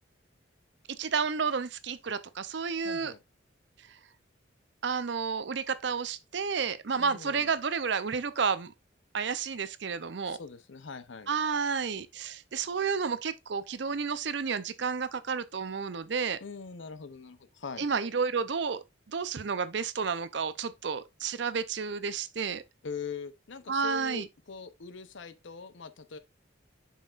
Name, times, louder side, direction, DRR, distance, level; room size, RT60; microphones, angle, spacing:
voice 1, 1.0-3.1 4.8-8.7 9.1-10.4 11.3-16.4 17.8-22.6 23.7-24.3, right 5 dB, 65° right, 0.6 m, -31 dB
voice 2, 2.8-3.2 6.9-7.5 10.3-11.3 16.4-17.9 22.8-26.2, left 5 dB, 70° left, 0.7 m, -42 dB
7.3 x 5.6 x 2.5 m
head